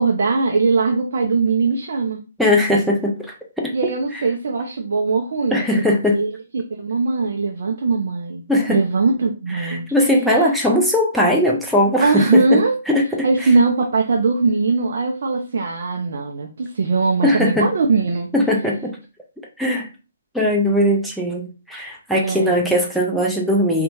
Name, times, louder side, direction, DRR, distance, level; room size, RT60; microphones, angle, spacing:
voice 1, 0.0-2.2 3.7-8.4 8.7-9.8 12.0-12.8 13.2-18.3 22.2-22.7, right 4 dB, 60° right, 2 dB, 0.4 m, -20 dB
voice 2, 2.4-3.7 5.5-6.2 8.5-8.8 9.5-12.6 12.9-13.5 17.2-17.7 18.3-19.0 19.6-19.9 20.3-23.8, left 1 dB, ahead, -2 dB, 0.4 m, -19 dB
2.7 x 2.1 x 2.5 m, 0.33 s
figure-of-eight pair, 135°, 0 cm